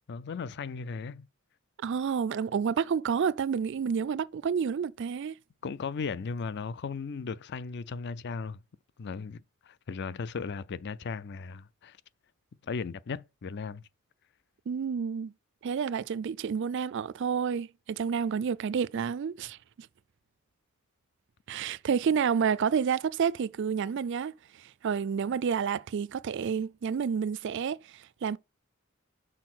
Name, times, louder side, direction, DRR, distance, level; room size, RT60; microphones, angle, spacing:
voice 1, 0.1-1.3 5.6-8.6 9.0-12.0 12.6-13.8, left 5 dB, 50° left, 0.4 m, -36 dB
voice 2, 1.8-5.3 14.7-15.3 15.6-19.9 21.5-24.3 24.6-28.4, right 6 dB, 55° right, 0.4 m, -29 dB
6.4 x 4.1 x 6.0 m
head